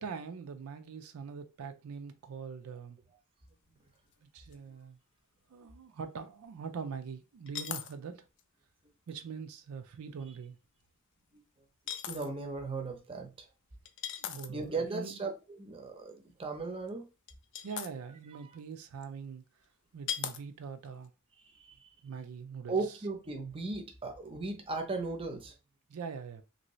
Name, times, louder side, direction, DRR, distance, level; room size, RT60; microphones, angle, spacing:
voice 1, 0.0-3.0 4.2-5.0 5.5-8.2 9.1-10.6 14.2-15.2 17.6-19.4 19.9-21.1 22.0-22.8 25.9-26.4, right 6 dB, 80° right, 0.4 m, -43 dB
sound 1, 4.1-4.2 4.5-4.6 7.5-7.9 8.4-8.5 10.2-10.4 11.9-12.3 13.9-14.6 16.9-17.0 17.3-17.9 19.0-19.1 20.1-20.4 20.8-21.1, left 10 dB, 55° left, 0.4 m, -38 dB
voice 2, 12.1-13.3 14.5-17.0 21.6-21.9 22.7-25.5, right 3 dB, 25° right, 0.6 m, -37 dB
3.0 x 2.6 x 3.0 m
head